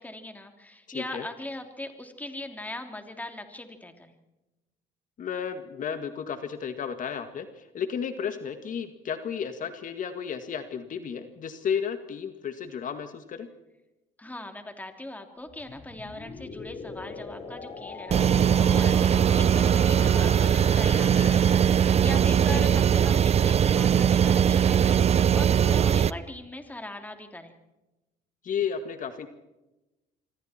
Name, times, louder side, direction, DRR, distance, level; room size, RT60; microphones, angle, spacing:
voice 1, 0.0-4.1 14.2-27.5, left 1 dB, 10° left, 6 dB, 3.2 m, -40 dB
voice 2, 0.9-1.3 5.2-13.5 22.5-22.8 28.4-29.3, left 7 dB, 50° left, 8 dB, 2.0 m, -33 dB
sound 1, 15.5-23.4, left 4 dB, 35° left, 4.8 m, -42 dB
sound 2, 18.1-26.1, right 8 dB, 40° right, 0.6 m, -21 dB
27.0 x 24.5 x 4.5 m, 1.0 s
cardioid pair, 110°, 17 cm